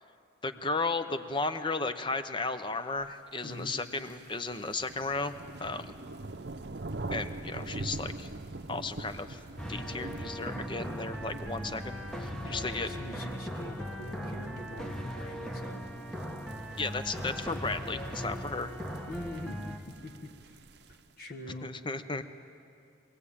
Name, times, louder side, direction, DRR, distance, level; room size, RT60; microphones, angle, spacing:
voice 1, 0.4-5.3 5.6-5.9 7.1-8.3 8.7-9.4 9.7-12.9 16.8-18.7 21.6-22.2, left 3 dB, 25° left, 10 dB, 0.7 m, -34 dB
voice 2, 3.4-3.8 12.4-15.8 19.1-20.6 21.2-21.7, left 1 dB, 50° left, 4 dB, 1.5 m, -43 dB
sound 1, 3.6-21.1, right 2 dB, 55° right, 0.7 m, -44 dB
sound 2, 9.6-19.8, equal, 5° left, 1.1 m, -39 dB
23.5 x 17.5 x 8.6 m, 2.5 s
head